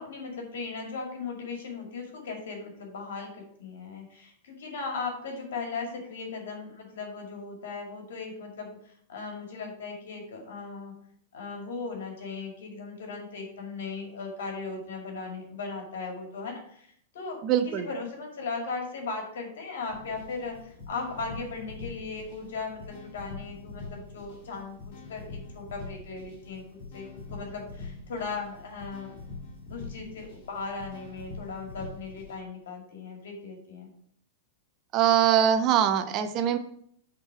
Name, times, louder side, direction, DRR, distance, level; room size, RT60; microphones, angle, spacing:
voice 1, 0.0-8.8 9.1-10.9 11.3-16.9 17.1-17.4 17.8-29.2 29.7-33.9, left 4 dB, 70° left, 2 dB, 2.3 m, -37 dB
voice 2, 17.4-17.9 34.9-36.6, right 9 dB, 40° right, 8 dB, 0.8 m, -23 dB
sound 1, 19.9-32.3, left 3 dB, 55° left, 2.7 m, -44 dB
8.0 x 3.9 x 4.8 m, 0.66 s
hypercardioid pair, 110°, 0 cm